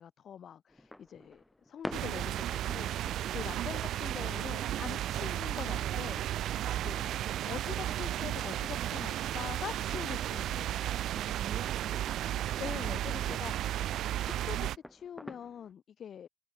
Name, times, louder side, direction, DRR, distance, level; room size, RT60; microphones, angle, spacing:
voice 1, 0.0-6.2 6.7-7.0 7.4-11.0 12.6-13.5 14.2-16.3, left 8 dB, 60° left, 2.9 m, -44 dB
sound 1, 0.7-15.7, left 1 dB, 5° left, 2.0 m, -51 dB
sound 2, 1.9-14.8, right 12 dB, 80° right, 0.4 m, -34 dB
sound 3, 2.9-6.6, right 5 dB, 40° right, 6.7 m, -55 dB
voice 2, 11.1-13.8, right 9 dB, 60° right, 3.6 m, -48 dB
cardioid pair, 90°, 0 cm